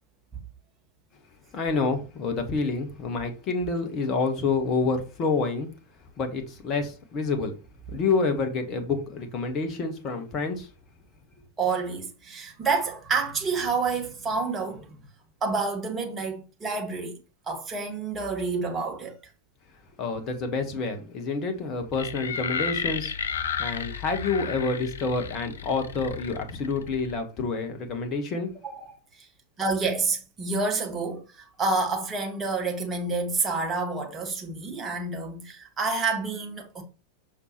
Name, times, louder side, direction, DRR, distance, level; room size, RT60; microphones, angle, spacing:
voice 1, 1.5-5.7 6.2-7.5 7.9-10.7 20.0-23.1 23.6-28.5, left 4 dB, 35° left, 1.3 m, -28 dB
voice 2, 11.6-15.0 15.4-17.1 17.5-19.2 28.6-28.9 29.6-36.8, right 4 dB, 20° right, 1.8 m, -28 dB
sound 1, 21.9-27.2, left 7 dB, 65° left, 0.6 m, -33 dB
6.6 x 5.5 x 3.1 m
figure-of-eight pair, 90°, 0 cm